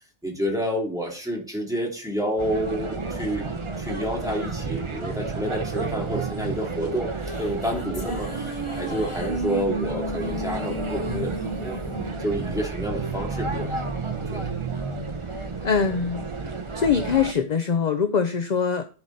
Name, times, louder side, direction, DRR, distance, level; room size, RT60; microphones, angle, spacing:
voice 1, 0.2-7.1 7.4-8.3 8.7-11.8 12.2-14.4, equal, 5° right, -2 dB, 2.8 m, -29 dB
sound 1, 2.4-17.3, right 4 dB, 25° right, 0.9 m, -31 dB
sound 2, 7.0-13.5, equal, 25° left, 1.2 m, -34 dB
voice 2, 15.6-16.3 16.7-18.8, left 6 dB, 40° left, 8 dB, 0.7 m, -23 dB
11.5 x 4.9 x 4.1 m, 0.37 s
omnidirectional pair, 1.3 m